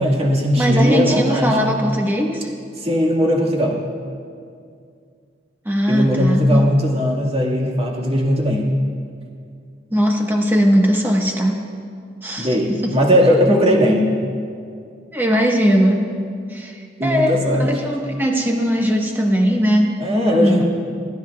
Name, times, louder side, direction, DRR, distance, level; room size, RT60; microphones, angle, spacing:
voice 1, 0.0-1.6 2.8-3.8 5.9-8.7 12.4-14.1 17.0-17.7 20.0-20.6, equal, 35° right, -3 dB, 1.9 m, -18 dB
voice 2, 0.6-2.5 5.6-6.7 9.9-11.6 12.2-13.0 15.1-16.1 16.5-19.9 20.4-20.6, equal, 10° right, 1 dB, 1.2 m, -19 dB
29.0 x 10.0 x 2.4 m, 2.3 s
head